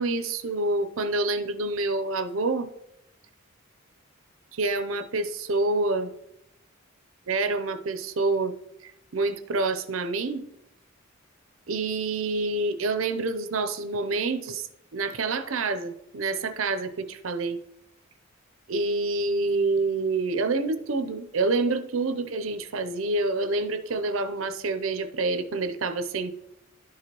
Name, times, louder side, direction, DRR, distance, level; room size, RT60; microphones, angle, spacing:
voice 1, 0.0-2.7 4.5-6.1 7.3-8.5 8.8-10.4 11.7-17.6 18.7-26.3, right 3 dB, 75° right, 11 dB, 0.6 m, -27 dB
11.5 x 4.8 x 3.0 m, 0.79 s
head